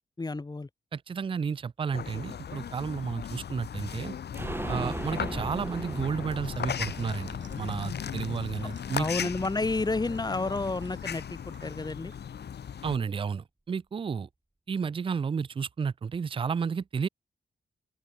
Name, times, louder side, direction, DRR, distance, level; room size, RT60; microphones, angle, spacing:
voice 1, 0.2-0.7 9.0-12.1, left 3 dB, 20° left, 1.0 m, -31 dB
voice 2, 0.9-4.1 4.7-9.3 12.8-14.3 14.7-17.1, right 6 dB, 30° right, 0.3 m, -32 dB
sound 1, 1.9-13.0, left 8 dB, 65° left, 0.8 m, -37 dB
sound 2, 4.3-10.0 10.3-10.4 10.7-10.8, right 2 dB, 10° right, 0.9 m, -39 dB
sound 3, 6.4-12.7, right 7 dB, 85° right, 7.7 m, -59 dB
open air
wide cardioid pair, 105°, 18 cm